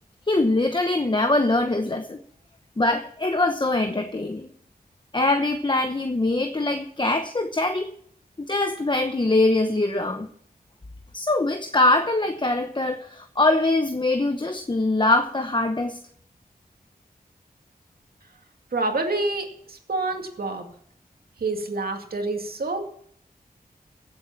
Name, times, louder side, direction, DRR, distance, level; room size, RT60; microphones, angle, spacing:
voice 1, 0.3-2.2 2.8-4.5 5.1-7.9 8.4-10.3 11.1-16.0, left 2 dB, 30° left, 7 dB, 0.9 m, -23 dB
voice 2, 18.7-20.7 21.4-22.8, right 2 dB, 75° right, 3 dB, 2.3 m, -27 dB
16.0 x 8.0 x 5.9 m, 0.64 s
wide cardioid pair, 70°, 16 cm